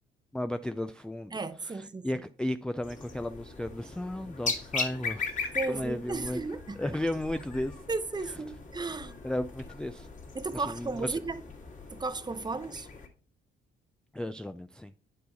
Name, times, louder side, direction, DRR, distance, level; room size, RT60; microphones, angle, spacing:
voice 1, 0.3-1.4 1.6-6.4 6.8-7.7 9.2-10.1 10.5-11.2 14.1-14.9, left 1 dB, 5° left, 0.3 m, -34 dB
voice 2, 1.3-2.1 5.5-6.8 7.9-9.1 10.3-11.4 11.9-12.9, right 3 dB, 20° right, 0.7 m, -34 dB
sound 1, 2.8-13.1, left 4 dB, 40° left, 2.0 m, -39 dB
9.2 x 4.6 x 4.1 m
cardioid pair, 90°, 20 cm